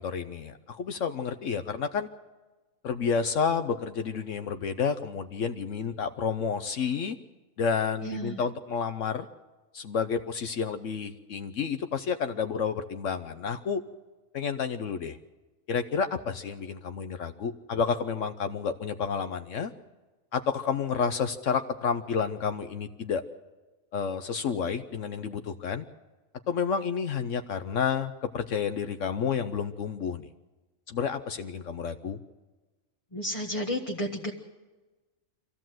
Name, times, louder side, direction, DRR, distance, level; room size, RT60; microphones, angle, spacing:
voice 1, 0.0-2.1 2.8-7.2 7.6-9.3 9.7-13.8 14.3-15.2 15.7-19.7 20.3-23.2 23.9-25.8 26.5-30.3 30.9-32.2, left 6 dB, 70° left, 8 dB, 1.2 m, -30 dB
voice 2, 8.0-8.4 33.1-34.3, equal, 25° left, 0 dB, 1.4 m, -32 dB
24.5 x 15.5 x 7.7 m, 1.2 s
omnidirectional pair, 1.4 m